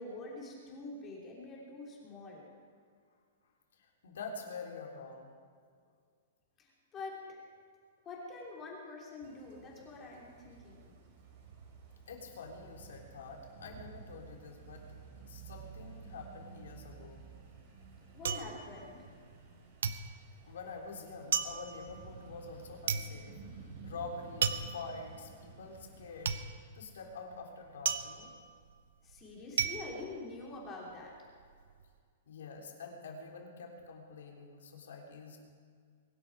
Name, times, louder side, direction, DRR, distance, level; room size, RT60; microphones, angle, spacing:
voice 1, 0.0-2.4 6.6-7.2 8.0-10.9 18.1-19.1 29.0-31.1, left 3 dB, 15° left, -3 dB, 3.3 m, -46 dB
voice 2, 3.7-5.3 12.1-14.8 15.2-17.2 20.4-26.4 26.7-28.3 32.3-35.4, left 4 dB, 85° left, 0 dB, 3.4 m, -46 dB
sound 1, 9.2-26.3, right 5 dB, 40° right, 3.1 m, -53 dB
sound 2, 17.1-19.5 19.8-30.9 31.3-31.9, right 7 dB, 75° right, 0.9 m, -36 dB
22.5 x 12.0 x 4.8 m, 2.1 s
hypercardioid pair, 175°, 0 cm